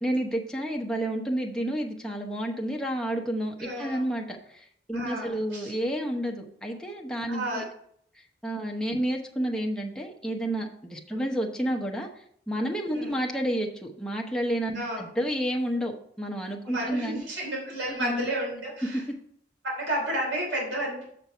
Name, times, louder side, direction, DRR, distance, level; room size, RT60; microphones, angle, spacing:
voice 1, 0.0-7.6 8.4-17.2 18.0-18.3, right 1 dB, 5° left, 0 dB, 0.9 m, -30 dB
voice 2, 3.6-4.0 4.9-5.7 7.3-7.6 12.9-13.1 14.7-15.0 16.7-19.0 19.7-21.0, right 1 dB, 85° right, -2 dB, 3.2 m, -31 dB
6.8 x 6.7 x 4.5 m, 0.67 s
head